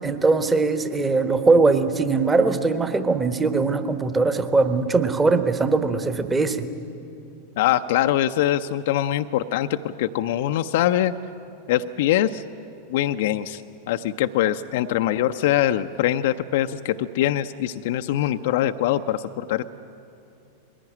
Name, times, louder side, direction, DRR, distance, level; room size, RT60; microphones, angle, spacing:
voice 1, 0.0-6.7, right 3 dB, 15° right, 9 dB, 1.2 m, -21 dB
voice 2, 7.6-11.1 11.7-12.4 12.9-13.6 13.9-19.6, left 12 dB, 55° left, 8 dB, 0.5 m, -23 dB
21.0 x 16.5 x 9.9 m, 2.6 s
figure-of-eight pair, 90°, 0 cm